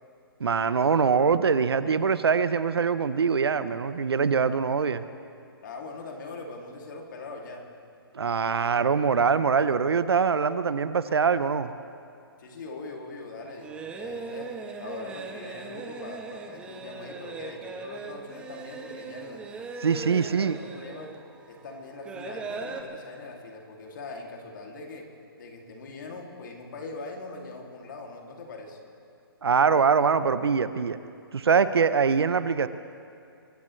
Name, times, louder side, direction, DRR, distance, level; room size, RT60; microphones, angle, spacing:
voice 1, 0.4-5.0 8.1-11.7 19.8-20.6 29.4-31.0 31.3-32.7, right 6 dB, 85° right, 13 dB, 0.8 m, -23 dB
voice 2, 5.6-7.7 12.4-14.5 14.8-19.4 19.8-21.1 21.5-25.1 25.4-28.8, left 3 dB, 50° left, 0 dB, 2.7 m, -41 dB
sound 1, 13.3-22.8, right 4 dB, 10° right, 0.7 m, -40 dB
24.0 x 15.0 x 3.2 m, 2.5 s
hypercardioid pair, 160°, 13 cm